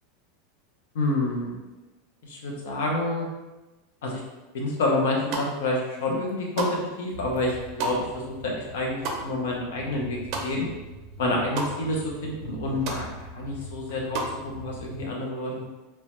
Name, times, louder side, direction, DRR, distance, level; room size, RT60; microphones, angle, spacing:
voice 1, 0.9-1.5 2.2-3.3 4.0-4.2 4.5-6.7 7.0-10.7 11.2-13.1 13.3-14.2 14.6-15.6, left 2 dB, 80° left, -2 dB, 0.6 m, -28 dB
sound 1, 5.1-5.8 6.1-10.9 11.1-11.7 12.1-12.2 12.5-13.0 13.4-14.4, right 3 dB, 40° right, 0.4 m, -33 dB
sound 2, 7.1-15.0, right 2 dB, 25° left, 1.1 m, -43 dB
3.0 x 2.1 x 2.9 m, 1.1 s
supercardioid pair, 170°, 0 cm